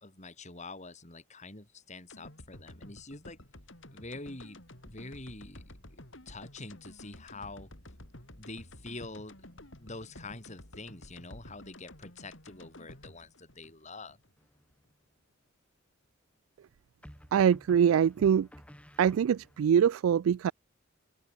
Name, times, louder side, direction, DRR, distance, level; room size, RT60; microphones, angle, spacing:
voice 1, 0.0-3.4 3.9-5.6 5.9-7.7 8.3-14.2, left 2 dB, 35° left, 3.9 m, -46 dB
sound 1, 2.1-14.3 14.7-14.8, left 1 dB, 65° left, 6.2 m, -51 dB
sound 2, 14.4-14.9 17.0-19.7, equal, 5° left, 4.9 m, -53 dB
voice 2, 17.3-18.5 19.0-20.5, right 8 dB, 90° right, 0.3 m, -24 dB
open air
head